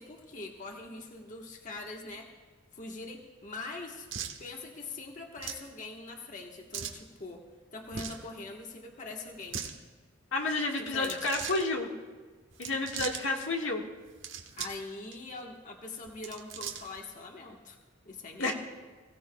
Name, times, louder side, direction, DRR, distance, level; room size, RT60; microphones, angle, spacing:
voice 1, 0.0-2.3 2.7-4.1 4.4-7.4 7.7-9.6 10.8-11.3 14.6-17.8 18.0-18.5, left 3 dB, 40° left, 1 dB, 1.3 m, -43 dB
sound 1, 4.1-4.4 5.4-5.7 6.7-7.0 7.9-8.2 9.3-9.7 10.9-11.6 12.5-13.2 14.0-14.8 15.1-15.2 16.1-17.0, right 7 dB, 70° right, 1.2 m, -39 dB
voice 2, 10.3-11.9 12.6-13.8 18.4-18.5, left 2 dB, 80° left, 1 dB, 1.6 m, -30 dB
23.0 x 16.0 x 2.3 m, 1.4 s
head